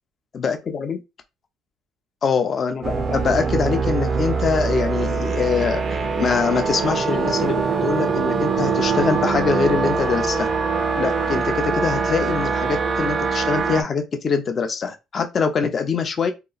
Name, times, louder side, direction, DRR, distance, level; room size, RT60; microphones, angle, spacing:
voice 1, 0.3-1.0 2.2-10.5 11.0-16.3, left 5 dB, 35° left, 0.4 m, -23 dB
sound 1, 2.8-13.8, right 5 dB, 35° right, 0.4 m, -23 dB
2.8 x 2.3 x 2.3 m
cardioid pair, 125°, 0 cm